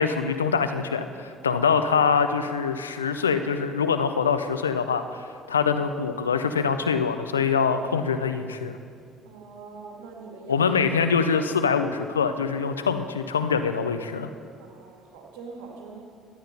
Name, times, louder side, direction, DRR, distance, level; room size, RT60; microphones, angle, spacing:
voice 1, 0.0-5.0 5.5-8.8 10.5-14.3, left 6 dB, 90° left, 9 dB, 0.5 m, -24 dB
voice 2, 9.2-10.7 14.6-16.0, right 4 dB, 70° right, 1 dB, 2.0 m, -43 dB
12.5 x 8.9 x 5.4 m, 2.3 s
hypercardioid pair, 55°, 0 cm